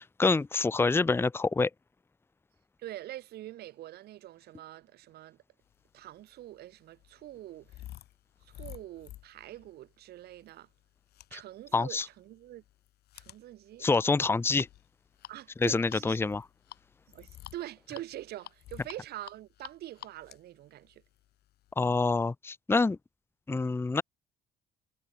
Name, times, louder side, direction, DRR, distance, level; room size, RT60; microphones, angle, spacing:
voice 1, 0.0-1.7 11.3-11.4 11.7-12.0 13.8-14.7 15.6-16.4 21.8-23.0 23.5-24.0, left 3 dB, 15° left, 0.8 m, -26 dB
voice 2, 2.8-5.4 5.9-7.8 8.4-10.7 11.3-12.6 13.1-13.9 15.3-16.2 17.1-21.0, right 14 dB, 70° right, 3.7 m, -45 dB
sound 1, 6.1-21.7, left 14 dB, 70° left, 2.8 m, -51 dB
cardioid pair, 110°, 17 cm